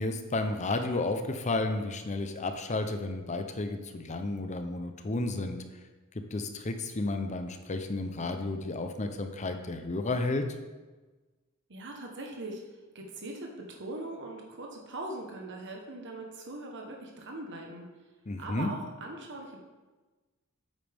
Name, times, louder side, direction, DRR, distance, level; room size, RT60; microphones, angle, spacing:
voice 1, 0.0-5.6 6.3-10.4 18.3-18.7, left 2 dB, 35° left, 7 dB, 0.7 m, -32 dB
voice 2, 11.7-17.9 18.4-19.6, right 2 dB, 55° right, 1 dB, 1.2 m, -41 dB
9.2 x 8.7 x 3.5 m, 1.2 s
head